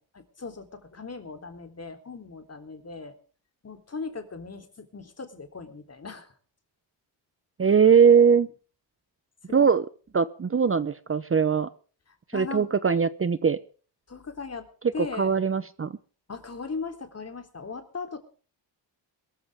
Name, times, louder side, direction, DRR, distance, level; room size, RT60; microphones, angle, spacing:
voice 1, 0.0-3.2 3.6-6.3 7.6-7.7 9.5-9.7 12.3-12.7 14.1-14.7 14.9-15.3 16.3-18.2, left 4 dB, 35° left, 7 dB, 3.6 m, -38 dB
voice 2, 7.6-8.5 9.5-9.8 10.1-11.7 12.3-13.6 15.0-16.0, right 6 dB, 30° right, 14 dB, 0.9 m, -21 dB
22.5 x 14.5 x 3.6 m, 0.40 s
cardioid pair, 110°, 45 cm